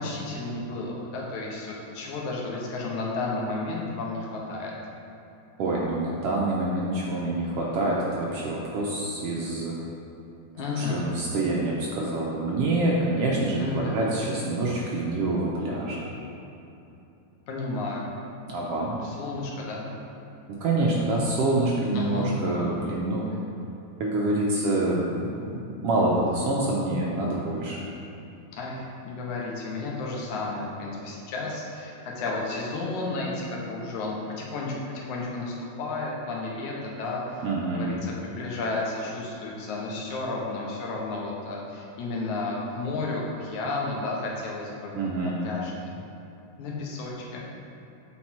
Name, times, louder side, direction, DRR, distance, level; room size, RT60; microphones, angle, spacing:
voice 1, 0.0-4.7 10.5-11.0 13.6-13.9 17.5-18.1 19.0-19.9 21.9-22.3 28.5-37.4 37.7-44.9 45.2-46.0 46.6-47.4, left 3 dB, 90° left, -3 dB, 2.4 m, -32 dB
voice 2, 5.6-9.8 10.7-16.1 18.5-19.0 20.5-23.2 24.0-27.8 37.4-37.9 44.9-45.4, right 2 dB, 75° right, -4 dB, 1.4 m, -26 dB
8.8 x 4.0 x 4.3 m, 2.9 s
omnidirectional pair, 3.4 m